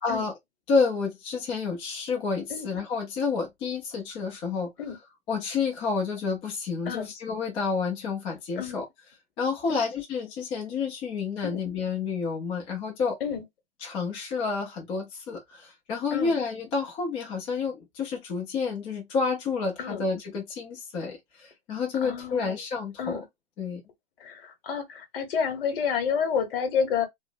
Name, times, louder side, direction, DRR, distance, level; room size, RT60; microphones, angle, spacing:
voice 1, 0.0-0.3 0.7-5.0 5.3-8.9 9.4-13.2 13.8-23.2 23.6-23.8, left 5 dB, 15° left, 0.5 m, -29 dB
voice 2, 22.0-22.6 23.0-23.2 24.2-27.1, left 6 dB, 60° left, 1.0 m, -29 dB
2.5 x 2.0 x 2.5 m
hypercardioid pair, 150°, 32 cm